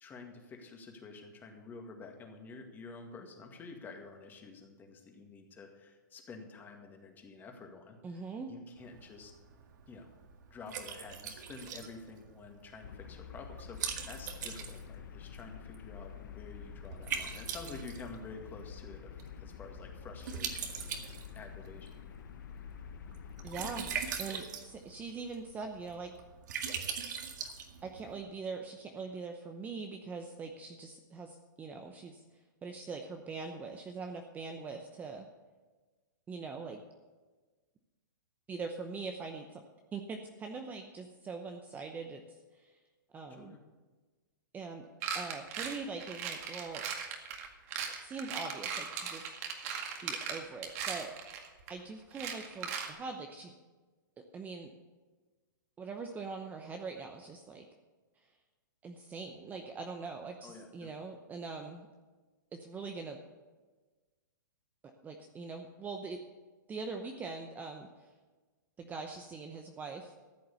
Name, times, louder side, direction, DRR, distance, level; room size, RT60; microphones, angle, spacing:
voice 1, 0.0-8.2 8.5-9.3 9.9-10.1 10.5-22.0 43.3-43.6 60.4-60.9, left 4 dB, 15° left, 3 dB, 1.9 m, -49 dB
voice 2, 8.0-8.5 23.4-23.9 24.2-26.1 27.8-32.2 32.6-35.3 36.3-36.8 38.5-39.6 39.9-42.8 43.1-43.6 44.5-44.9 45.1-46.8 48.0-49.3 50.0-51.1 51.7-53.5 54.2-54.7 55.8-57.7 58.8-61.9 62.5-63.2 65.0-66.2 66.7-68.1 68.8-70.1, right 4 dB, 15° right, 4 dB, 0.8 m, -42 dB
Liquid, 8.8-28.2, right 7 dB, 60° right, 1.9 m, -43 dB
sound 1, 12.8-24.2, left 7 dB, 65° left, 1.2 m, -48 dB
sound 2, 45.0-51.7 52.1-52.9, right 7 dB, 45° right, 2.0 m, -38 dB
14.0 x 7.7 x 7.0 m, 1.3 s
hypercardioid pair, 140°, 11 cm